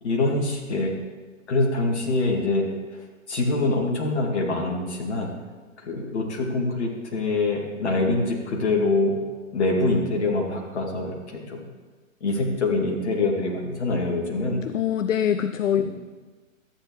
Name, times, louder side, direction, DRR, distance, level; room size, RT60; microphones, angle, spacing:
voice 1, 0.0-0.9 1.5-2.6 3.3-5.3 5.8-9.1 9.5-11.6 12.2-14.6 15.8-15.9, left 2 dB, 55° left, 0 dB, 2.4 m, -24 dB
voice 2, 14.6-15.8, left 9 dB, 70° left, 10 dB, 0.5 m, -23 dB
12.5 x 8.9 x 3.2 m, 1.3 s
figure-of-eight pair, 125°, 40 cm